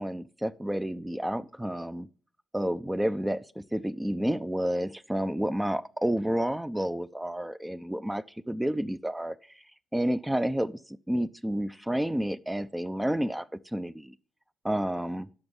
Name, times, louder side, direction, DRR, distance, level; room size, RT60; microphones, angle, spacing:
voice 1, 0.0-2.1 2.5-9.4 9.9-10.8 11.1-14.1 14.6-15.3, right 1 dB, 10° right, 0.5 m, -30 dB
10.5 x 6.1 x 5.6 m
hypercardioid pair, 40°, 0 cm